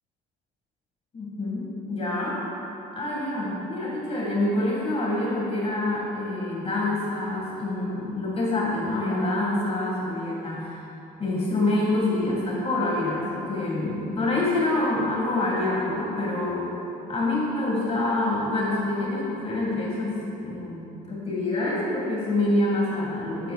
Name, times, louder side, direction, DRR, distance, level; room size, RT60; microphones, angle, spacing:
voice 1, 1.1-2.4 2.9-10.8 11.2-16.7 17.1-23.5, left 2 dB, 35° left, -4 dB, 1.7 m, -26 dB
11.0 x 8.4 x 2.3 m, 3.0 s
cardioid pair, 110°, 17 cm